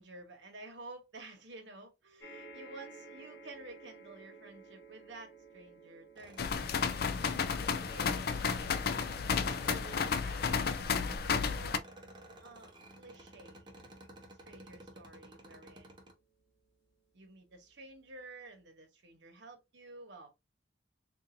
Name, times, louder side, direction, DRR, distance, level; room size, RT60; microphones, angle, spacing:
voice 1, 0.0-6.9 7.2-8.2 9.4-11.7 12.4-13.7 14.4-16.1 17.1-20.3, right 2 dB, 75° right, 1.2 m, -51 dB
sound 1, 2.2-16.8 17.5-17.6 17.9-18.0, right 2 dB, 75° left, 1.2 m, -57 dB
sound 2, 6.2-16.1, right 1 dB, 25° right, 0.7 m, -53 dB
sound 3, 6.4-11.8, left 6 dB, 55° left, 0.4 m, -32 dB
3.9 x 2.6 x 2.6 m
head